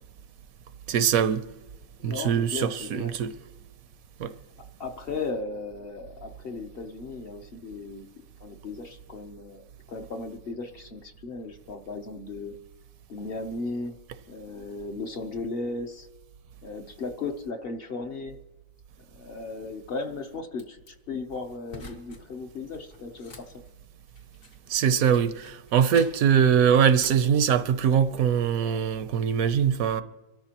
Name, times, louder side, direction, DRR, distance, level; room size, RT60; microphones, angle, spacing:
voice 1, 0.9-1.4 2.0-3.3 4.2-4.3 24.7-30.0, right 8 dB, 80° right, 1.1 m, -22 dB
voice 2, 2.0-3.1 4.8-8.1 8.4-12.5 13.1-13.9 14.3-16.1 16.6-18.4 19.1-23.5, left 3 dB, 45° left, 1.0 m, -36 dB
sound 1, 20.5-20.9 21.7-22.2 22.5-24.7 25.1-26.3 26.7-27.3, left 1 dB, 65° left, 2.4 m, -46 dB
24.0 x 13.0 x 2.9 m
omnidirectional pair, 1.5 m